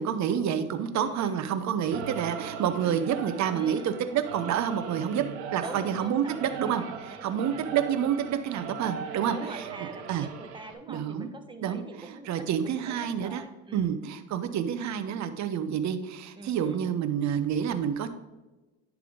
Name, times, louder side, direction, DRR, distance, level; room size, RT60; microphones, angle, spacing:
voice 1, 0.0-5.2 5.5-9.7 10.1-10.3 10.9-11.3 11.6-13.4 13.7-18.1, right 8 dB, 55° right, 9 dB, 0.9 m, -28 dB
voice 2, 1.0-1.4 3.5-4.0 5.6-7.7 9.3-13.9 16.3-16.8, right 2 dB, 15° right, 5 dB, 1.3 m, -44 dB
Singing / Musical instrument, 1.8-10.7, right 6 dB, 90° right, 1.1 m, -39 dB
10.5 x 3.6 x 5.0 m, 1.1 s
supercardioid pair, 80°, 33 cm